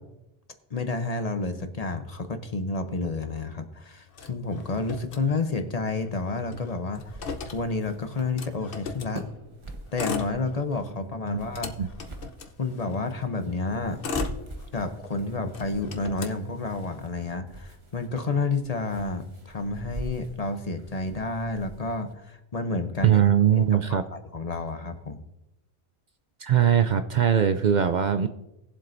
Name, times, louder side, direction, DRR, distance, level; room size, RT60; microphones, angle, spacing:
voice 1, 0.7-7.0 7.5-9.3 9.9-11.7 12.6-14.0 14.7-23.2 23.6-25.2, left 3 dB, 40° left, 7 dB, 0.8 m, -30 dB
Motor vehicle (road), 4.1-5.8 6.1-6.2 6.4-9.2 9.8-10.9 11.3-13.1 13.7-15.1 15.5-17.1, left 5 dB, 65° left, 1.0 m, -37 dB
sound 1, 6.9-22.1, right 2 dB, 30° right, 1.0 m, -44 dB
voice 2, 23.0-24.0 26.4-28.3, right 9 dB, 55° right, 9 dB, 0.6 m, -21 dB
19.5 x 7.5 x 2.6 m, 0.92 s
omnidirectional pair, 1.0 m